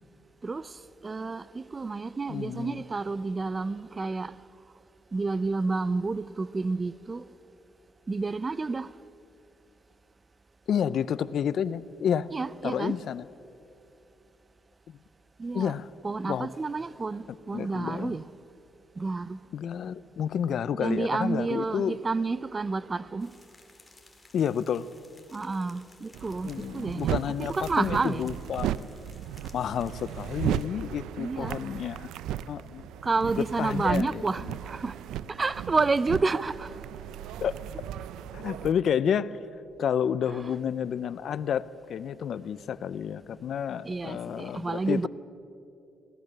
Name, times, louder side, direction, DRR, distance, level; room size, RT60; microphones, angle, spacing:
voice 1, 1.0-4.4 5.1-7.2 8.1-8.9 12.3-13.0 15.4-15.7 16.0-18.2 19.0-19.4 20.8-23.3 25.3-27.2 27.5-28.3 31.2-31.6 33.0-35.0 35.3-36.7 43.8-45.1, right 3 dB, 30° right, 0.5 m, -30 dB
voice 2, 2.3-2.8 10.7-12.3 12.6-13.3 14.9-15.0 15.5-15.9 16.3-16.5 17.5-18.2 19.5-22.0 24.3-24.9 26.4-28.8 29.5-32.1 32.5-32.9 33.2-34.6 37.4-37.6 38.3-39.4 39.8-45.1, left 8 dB, 65° left, 0.6 m, -30 dB
sound 1, 23.2-30.7, left 3 dB, 20° left, 2.6 m, -58 dB
sound 2, 26.1-38.7, right 11 dB, 90° right, 0.5 m, -36 dB
22.0 x 17.5 x 6.7 m
cardioid pair, 90°, 0 cm